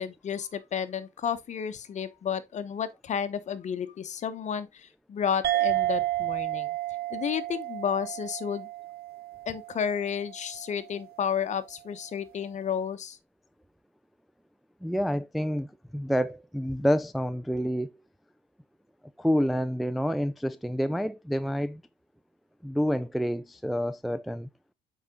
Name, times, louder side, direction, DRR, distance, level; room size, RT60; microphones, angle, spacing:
voice 1, 0.0-6.7 7.1-8.7 9.5-13.2, left 8 dB, 45° left, 1.0 m, -32 dB
sound 1, 5.4-10.4, right 16 dB, 65° right, 0.8 m, -31 dB
voice 2, 14.8-17.9 19.2-21.8 22.6-24.5, equal, ahead, 0.3 m, -28 dB
7.2 x 5.0 x 3.8 m
cardioid pair, 110°, 17 cm